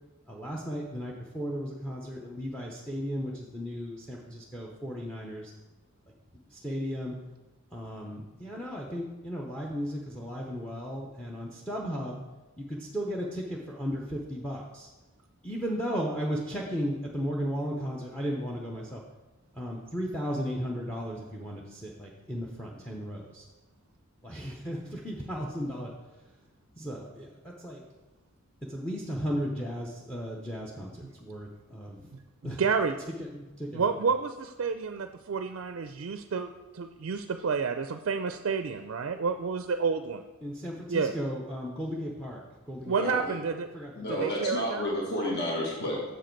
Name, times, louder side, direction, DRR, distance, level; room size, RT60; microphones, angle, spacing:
voice 1, 0.3-5.5 6.5-7.1 7.7-12.2 12.6-13.9 14.3-14.9 15.4-19.0 19.5-23.4 24.2-25.9 26.8-27.3 27.6-27.8 28.7-32.1 32.4-32.6 33.2-34.0 40.4-43.2 43.7-44.3, equal, 5° left, -1 dB, 0.7 m, -35 dB
voice 2, 32.4-33.0 33.7-40.2 40.9-41.1 42.8-43.7 44.1-44.8, right 5 dB, 65° right, 8 dB, 0.4 m, -30 dB
voice 3, 44.0-46.0, left 1 dB, 50° left, -4 dB, 1.7 m, -30 dB
7.5 x 6.8 x 4.5 m, 1.1 s
head